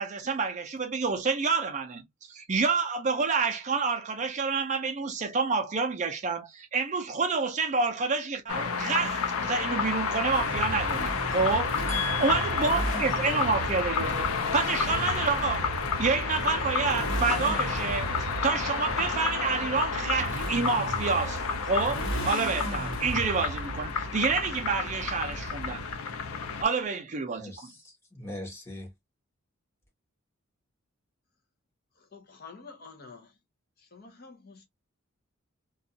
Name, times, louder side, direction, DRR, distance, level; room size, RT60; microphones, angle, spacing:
voice 1, 0.0-2.0 2.3-11.9 12.2-14.3 14.5-15.7 16.0-25.8 26.6-27.7, right 4 dB, 35° right, 0.4 m, -28 dB
sound 1, 8.5-26.6, left 5 dB, 90° left, 0.5 m, -31 dB
Motorcycle, 10.3-26.1, right 1 dB, 65° left, 1.2 m, -36 dB
voice 2, 11.9-13.0 27.4-28.9, left 3 dB, 10° left, 1.0 m, -38 dB
voice 3, 32.0-33.3 33.8-34.7, left 4 dB, 45° left, 0.7 m, -49 dB
2.5 x 2.3 x 2.6 m
head